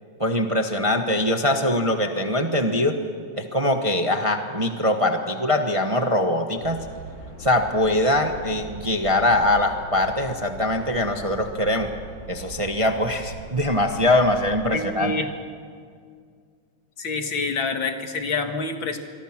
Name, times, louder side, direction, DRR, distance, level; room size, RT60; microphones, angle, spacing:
voice 1, 0.2-3.0 3.3-6.8 7.4-11.9 12.3-15.1, left 1 dB, 20° right, 5 dB, 1.0 m, -22 dB
sound 1, 6.6-14.6, right 2 dB, 55° left, 5.9 m, -41 dB
voice 2, 14.7-15.3 17.0-19.0, left 4 dB, 70° left, 5 dB, 2.5 m, -27 dB
26.5 x 23.0 x 6.0 m, 2.1 s
omnidirectional pair, 2.2 m